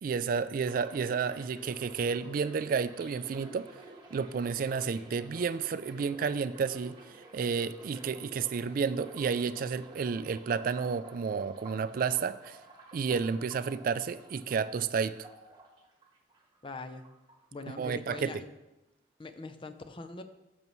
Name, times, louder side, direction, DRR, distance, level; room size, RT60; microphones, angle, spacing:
voice 1, 0.0-3.7 4.1-6.9 7.3-12.6 12.9-15.2 17.8-18.3, right 5 dB, 50° right, 14 dB, 0.3 m, -31 dB
sound 1, 0.6-16.6 16.9-17.8 18.1-18.4, right 2 dB, 25° right, 1.4 m, -52 dB
voice 2, 16.6-17.1 17.5-18.6 19.2-20.2, left 3 dB, 30° left, 8 dB, 0.5 m, -42 dB
10.5 x 7.0 x 3.1 m, 0.99 s
head